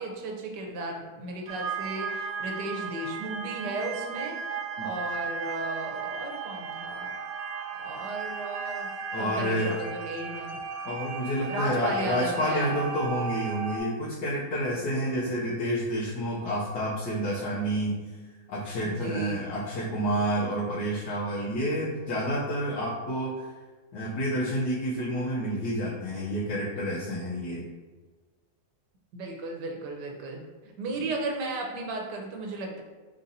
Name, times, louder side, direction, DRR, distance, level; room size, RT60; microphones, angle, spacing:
voice 1, 0.0-7.1 7.8-8.9 9.2-10.6 11.5-12.7 18.8-19.5 29.1-30.4 30.8-32.8, right 2 dB, 85° right, 1 dB, 1.4 m, -35 dB
sound 1, 1.5-13.8, right 5 dB, 65° right, 0.7 m, -35 dB
voice 2, 9.1-9.8 10.8-18.0 18.5-23.5 23.9-27.6 31.0-31.1, equal, 80° left, -9 dB, 1.4 m, -29 dB
3.9 x 2.7 x 3.9 m, 1.3 s
omnidirectional pair, 1.7 m